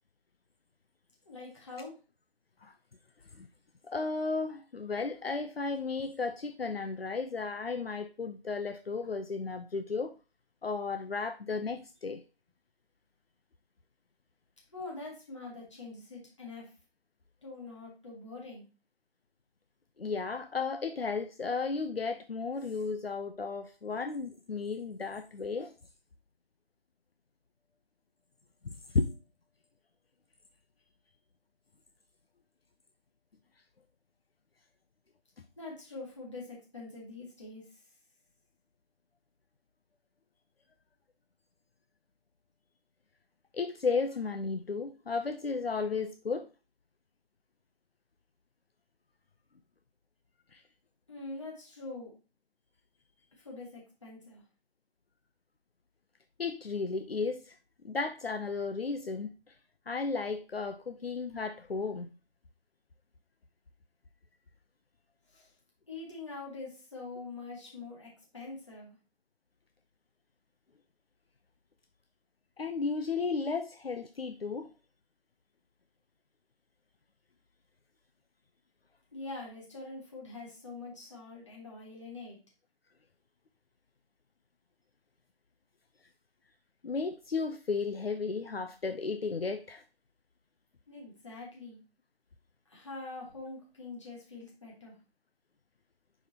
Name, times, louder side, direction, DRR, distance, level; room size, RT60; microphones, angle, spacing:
voice 1, 1.3-1.9 14.7-16.7 17.4-18.7 35.6-37.8 51.1-52.1 53.4-54.4 65.3-65.5 65.9-68.9 79.1-82.4 90.9-91.8 92.7-94.9, left 3 dB, 30° left, 2.5 m, -44 dB
voice 2, 3.8-10.1 10.6-12.2 20.0-25.8 28.6-29.1 43.5-46.5 50.5-50.6 56.4-57.6 57.8-59.6 59.9-62.1 72.6-74.7 86.8-89.8, left 4 dB, 75° left, 0.7 m, -34 dB
5.2 x 4.9 x 4.2 m
figure-of-eight pair, 175°, 30 cm